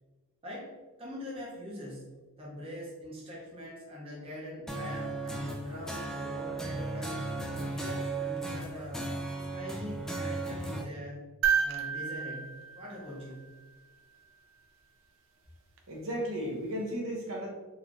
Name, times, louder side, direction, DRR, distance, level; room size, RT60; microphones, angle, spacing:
voice 1, 0.4-7.2 7.6-9.1 9.5-11.3 11.6-13.5, left 1 dB, 25° right, -5 dB, 0.8 m, -43 dB
sound 1, 4.7-10.8, right 2 dB, ahead, 0.3 m, -36 dB
sound 2, 11.4-13.7 15.8-15.9, right 7 dB, 60° right, 0.5 m, -31 dB
voice 2, 15.9-17.5, equal, 80° right, -2 dB, 1.0 m, -34 dB
4.0 x 2.7 x 3.0 m, 1.3 s
head